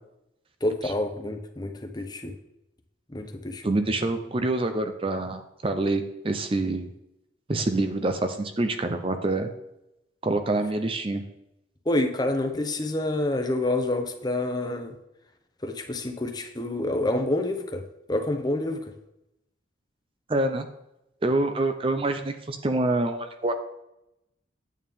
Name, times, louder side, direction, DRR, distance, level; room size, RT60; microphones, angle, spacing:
voice 1, 0.6-2.3 3.1-3.6 11.9-14.9 15.6-17.8 18.1-18.9, left 1 dB, 20° left, 6 dB, 0.9 m, -28 dB
voice 2, 3.6-6.9 7.5-9.5 10.2-11.2 20.3-20.7 21.2-23.5, right 2 dB, 30° right, 7 dB, 0.6 m, -26 dB
9.3 x 8.7 x 3.6 m, 0.87 s
head